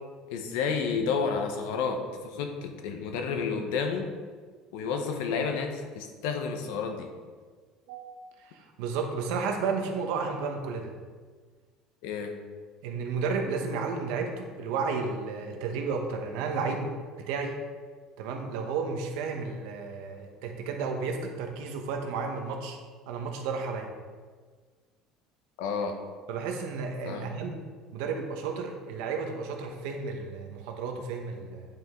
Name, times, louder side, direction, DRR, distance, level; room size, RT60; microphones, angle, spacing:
voice 1, 0.3-4.1 4.7-7.1 12.0-12.3 25.6-25.9 27.0-27.3, left 5 dB, 85° left, 4 dB, 1.0 m, -30 dB
voice 2, 8.4-10.9 12.8-16.9 17.3-17.6 18.2-22.8 23.1-23.9 26.3-27.5 27.9-31.7, right 4 dB, 75° right, 3 dB, 1.2 m, -32 dB
8.9 x 5.6 x 3.8 m, 1.5 s
cardioid pair, 145°, 0 cm